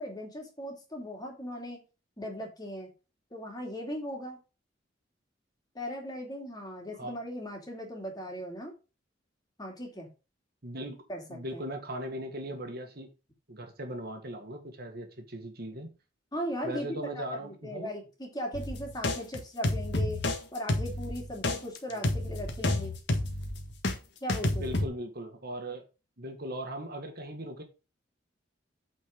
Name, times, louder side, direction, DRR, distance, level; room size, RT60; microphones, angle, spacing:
voice 1, 0.0-1.8 2.2-2.9 3.3-4.4 5.7-8.7 9.6-10.1 11.1-11.6 16.3-20.2 20.5-22.9 24.2-24.7, equal, 20° left, 2.6 m, -38 dB
voice 2, 10.6-11.0 11.3-13.1 13.5-15.9 16.6-17.9 24.5-25.9 26.2-27.6, right 1 dB, 55° right, 1.7 m, -39 dB
sound 1, 18.5-23.9 24.3-24.9, left 1 dB, 65° left, 1.6 m, -30 dB
8.7 x 4.5 x 5.1 m
head